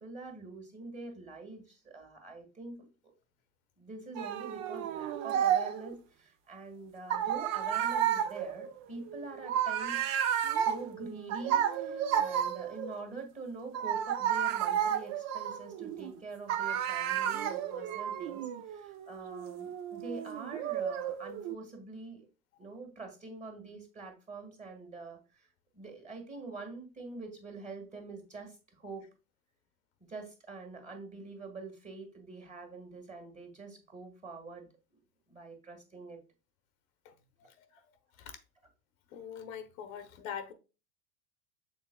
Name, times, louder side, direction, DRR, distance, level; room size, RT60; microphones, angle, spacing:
voice 1, 0.0-2.9 3.8-10.1 10.6-22.3 22.6-25.5 25.7-29.1 30.1-34.7 34.9-35.0 35.3-36.2, right 3 dB, 15° right, 1.7 m, -45 dB
sound 1, 4.1-5.9 7.1-13.0 13.7-16.1 16.5-21.5, right 9 dB, 40° right, 0.6 m, -32 dB
voice 2, 39.1-40.5, left 8 dB, 65° left, 0.9 m, -42 dB
6.2 x 3.7 x 2.2 m
hypercardioid pair, 90°, 44 cm